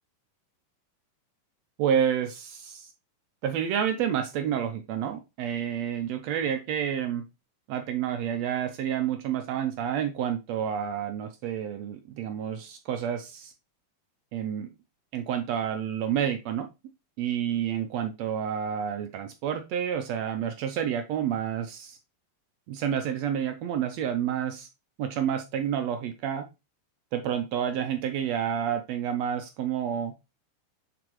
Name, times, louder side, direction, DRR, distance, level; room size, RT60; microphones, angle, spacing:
voice 1, 1.8-2.9 3.4-7.2 7.7-13.5 14.3-14.7 15.1-16.7 17.2-22.0 22.7-24.7 25.0-26.4 27.1-30.1, right 9 dB, 75° right, 7 dB, 1.6 m, -29 dB
8.1 x 4.0 x 3.1 m, 0.24 s
omnidirectional pair, 3.7 m